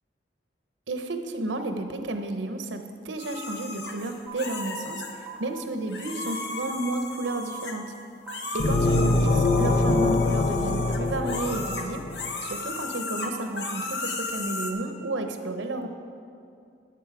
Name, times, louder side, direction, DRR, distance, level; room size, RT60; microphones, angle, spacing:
voice 1, 0.9-5.0 5.4-7.9 8.5-12.0 12.4-15.9, right 2 dB, 90° right, 6 dB, 0.8 m, -32 dB
sound 1, 3.2-5.1 5.9-8.0 8.3-14.7, left 3 dB, 70° left, 0.9 m, -35 dB
sound 2, 4.3-4.4 5.3-5.4 6.3-6.4 7.3-7.4 8.2-8.4 9.2-9.8, right 9 dB, 10° right, 1.1 m, -41 dB
sound 3, 8.6-12.3, left 2 dB, 40° left, 0.4 m, -24 dB
10.0 x 8.0 x 4.9 m, 2.4 s
head